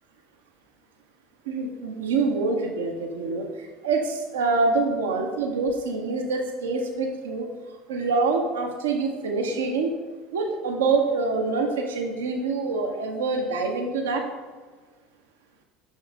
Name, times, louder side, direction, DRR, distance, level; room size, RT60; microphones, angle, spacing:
voice 1, 1.5-7.5 7.9-9.9 10.3-14.2, right 3 dB, 80° right, 2 dB, 0.7 m, -26 dB
6.1 x 5.5 x 3.5 m, 1.4 s
hypercardioid pair, 70°, 0 cm